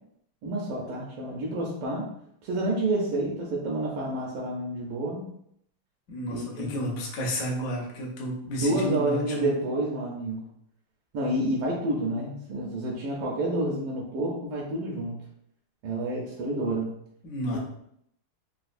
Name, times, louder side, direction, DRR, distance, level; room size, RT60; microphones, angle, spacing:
voice 1, 0.4-2.1 2.4-5.3 6.3-6.8 8.6-10.4 11.1-15.2 15.8-16.9 17.5-17.6, right 1 dB, 80° right, -4 dB, 1.5 m, -29 dB
voice 2, 6.1-9.5 17.2-17.6, equal, 65° left, -2 dB, 0.9 m, -31 dB
4.0 x 2.3 x 2.4 m, 0.71 s
omnidirectional pair, 2.4 m